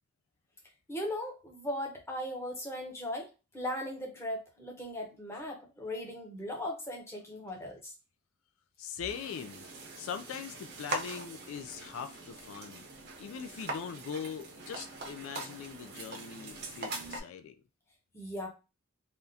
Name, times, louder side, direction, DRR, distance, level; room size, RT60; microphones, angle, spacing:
voice 1, 0.9-7.9 18.1-18.5, left 1 dB, 10° left, 0.7 m, -38 dB
voice 2, 8.8-9.6 10.0-12.8 13.2-17.5, left 7 dB, 75° left, 0.3 m, -41 dB
sound 1, 9.1-17.2, right 2 dB, 50° right, 0.6 m, -42 dB
3.4 x 2.3 x 2.7 m
head